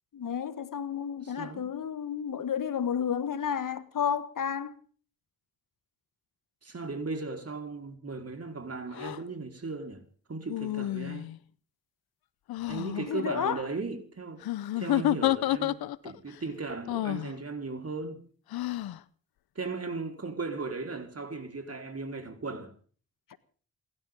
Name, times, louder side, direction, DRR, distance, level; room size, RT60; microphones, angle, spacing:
voice 1, 0.1-4.8 13.1-13.7, left 8 dB, 60° left, 1.7 m, -31 dB
voice 2, 6.6-10.0 10.3-11.3 12.7-14.4 14.8-18.2 19.5-22.7, right 3 dB, 40° right, 4.6 m, -37 dB
sound 1, 8.9-9.2 10.5-11.4 12.5-13.1 14.4-16.2 16.9-17.3 18.5-19.0, left 14 dB, 75° left, 1.0 m, -29 dB
28.5 x 13.0 x 3.8 m
supercardioid pair, 45°, 37 cm